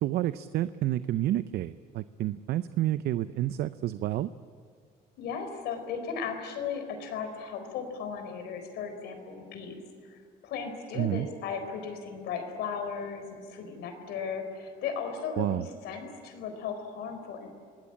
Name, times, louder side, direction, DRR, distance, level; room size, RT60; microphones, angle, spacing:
voice 1, 0.0-4.3 10.9-11.3 15.4-15.7, right 13 dB, 70° right, 14 dB, 0.6 m, -29 dB
voice 2, 5.2-9.8 10.1-17.5, left 6 dB, 80° left, 7 dB, 4.2 m, -36 dB
27.0 x 20.0 x 8.8 m, 2.1 s
cardioid pair, 110°, 17 cm